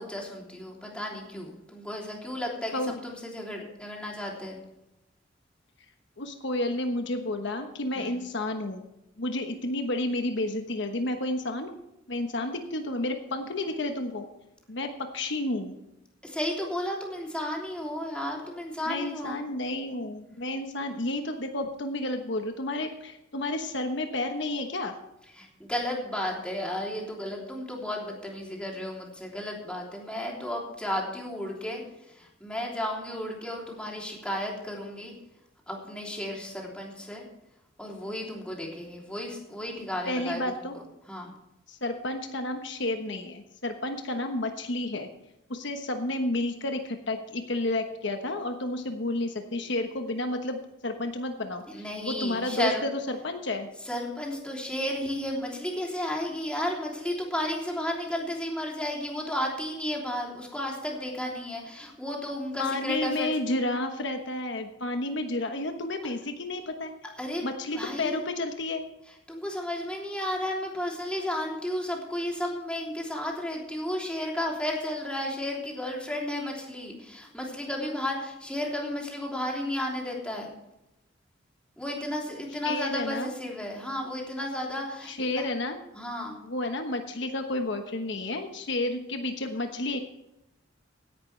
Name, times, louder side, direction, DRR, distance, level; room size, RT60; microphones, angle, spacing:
voice 1, 0.0-4.6 7.9-8.2 16.2-19.4 25.3-35.2 35.7-37.2 37.8-40.4 40.7-41.3 51.7-52.8 53.8-63.3 67.2-68.2 69.3-80.5 81.8-85.5 85.9-86.4, left 1 dB, 5° left, -2 dB, 3.2 m, -33 dB
voice 2, 6.2-8.8 9.2-11.8 12.1-14.3 14.7-15.7 18.9-24.9 40.1-40.7 41.7-45.1 45.5-53.7 62.6-66.9 67.4-68.8 82.6-83.3 85.1-85.8 86.4-90.0, left 2 dB, 65° left, 5 dB, 1.2 m, -31 dB
17.0 x 11.0 x 3.3 m, 0.90 s
head